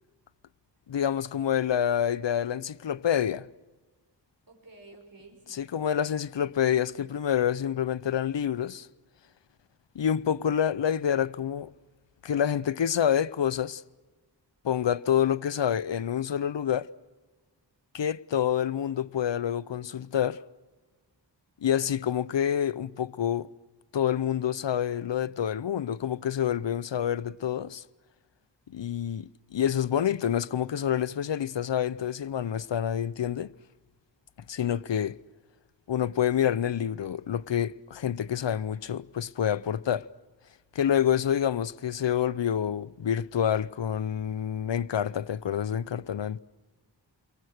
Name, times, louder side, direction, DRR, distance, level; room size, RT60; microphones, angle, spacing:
voice 1, 0.9-3.5 5.5-8.9 9.9-11.7 12.2-13.8 14.6-16.9 17.9-20.4 21.6-23.5 23.9-27.8 28.7-33.5 34.5-35.2 35.9-40.1 40.7-46.4, left 9 dB, 75° left, 0.7 m, -27 dB
voice 2, 4.5-5.7 10.2-10.6, right 2 dB, 50° right, 6.0 m, -53 dB
30.0 x 23.5 x 6.5 m
wide cardioid pair, 60°, 44 cm